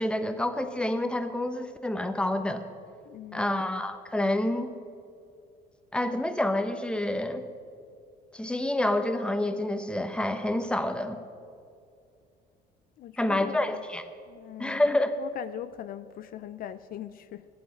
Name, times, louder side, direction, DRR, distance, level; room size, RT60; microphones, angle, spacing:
voice 1, 0.0-2.6 3.3-4.7 5.9-7.4 8.3-11.2 13.2-14.0 14.6-15.1, left 1 dB, 5° left, 9 dB, 1.0 m, -28 dB
voice 2, 3.1-3.5 13.0-13.8 14.3-14.8 15.2-17.5, left 11 dB, 60° left, 13 dB, 0.5 m, -40 dB
15.0 x 11.5 x 5.8 m, 2.4 s
cardioid pair, 110°, 17 cm